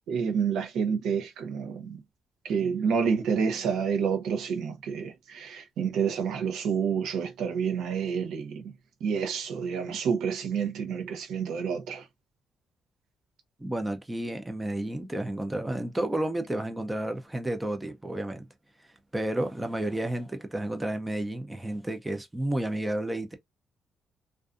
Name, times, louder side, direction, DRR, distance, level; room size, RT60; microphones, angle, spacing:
voice 1, 0.1-2.0 2.4-8.6 9.0-12.0, right 6 dB, 80° right, 0.7 m, -29 dB
voice 2, 13.6-18.4 19.1-23.3, right 1 dB, 10° right, 0.6 m, -31 dB
2.5 x 2.3 x 2.4 m
cardioid pair, 90°, 0 cm